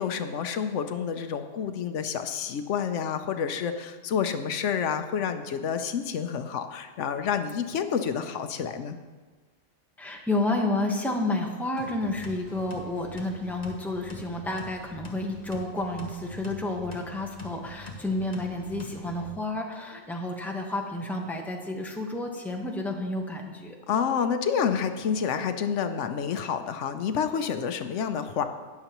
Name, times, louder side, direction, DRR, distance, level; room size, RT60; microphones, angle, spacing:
voice 1, 0.0-9.0 23.9-28.4, left 7 dB, 80° left, 8 dB, 1.0 m, -29 dB
voice 2, 10.0-23.8, left 2 dB, ahead, 1 dB, 0.9 m, -30 dB
sound 1, 11.8-19.3, left 1 dB, 35° left, 1.2 m, -44 dB
19.0 x 6.8 x 3.0 m, 1.4 s
omnidirectional pair, 1.2 m